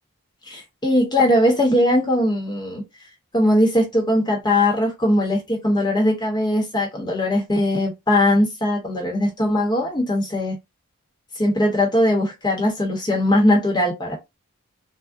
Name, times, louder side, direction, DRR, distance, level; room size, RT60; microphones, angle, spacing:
voice 1, 0.5-2.8 3.3-10.6 11.3-14.2, left 1 dB, 20° left, 0.8 m, -20 dB
3.4 x 2.0 x 2.4 m
head